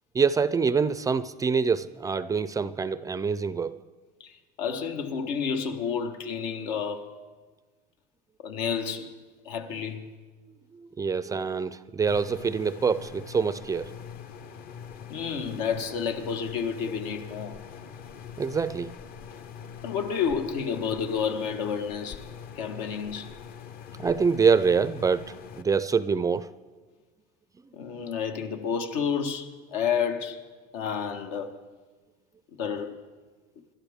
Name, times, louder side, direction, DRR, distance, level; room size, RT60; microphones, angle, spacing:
voice 1, 0.1-3.8 11.0-13.9 18.4-18.9 24.0-26.5, right 5 dB, 15° right, 0.4 m, -25 dB
voice 2, 4.6-7.1 8.4-9.1 9.4-10.1 15.1-17.6 19.8-22.2 22.6-23.4 27.7-30.4 30.7-31.6 32.6-33.0, left 7 dB, 80° left, 1.4 m, -30 dB
sound 1, 12.1-25.6, left 7 dB, 45° left, 0.8 m, -43 dB
27.0 x 12.0 x 3.6 m
supercardioid pair, 130°, 21 cm